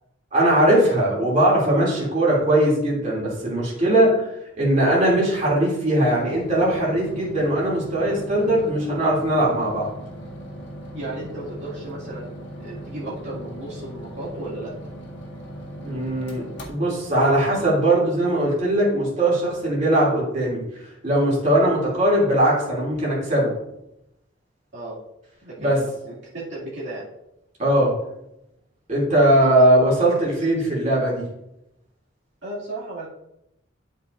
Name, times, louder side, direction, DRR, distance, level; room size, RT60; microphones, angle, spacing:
voice 1, 0.3-4.3 4.6-9.9 15.8-23.5 25.6-25.8 27.6-27.9 28.9-31.3, right 1 dB, 35° right, -5 dB, 2.8 m, -20 dB
sound 1, 6.0-18.5, equal, 55° left, 1.8 m, -38 dB
voice 2, 10.9-14.7 24.7-25.0 25.4-27.0 29.4-29.7 30.1-30.2 32.4-33.1, right 2 dB, 60° right, -9 dB, 2.5 m, -35 dB
12.0 x 5.5 x 2.6 m, 0.85 s
head